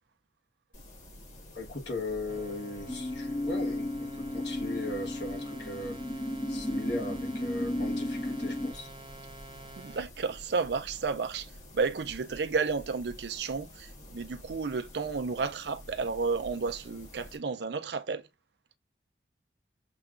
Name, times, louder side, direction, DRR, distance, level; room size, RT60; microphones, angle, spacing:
sound 1, 0.7-17.4, left 1 dB, 45° left, 1.5 m, -50 dB
voice 1, 1.5-6.0 6.5-8.9, left 2 dB, 75° left, 1.2 m, -38 dB
sound 2, 2.3-10.0, right 2 dB, 25° right, 0.6 m, -49 dB
sound 3, 2.9-8.7, left 1 dB, 15° left, 0.4 m, -34 dB
voice 2, 9.8-18.2, right 4 dB, 70° right, 0.5 m, -32 dB
6.7 x 2.3 x 2.4 m
head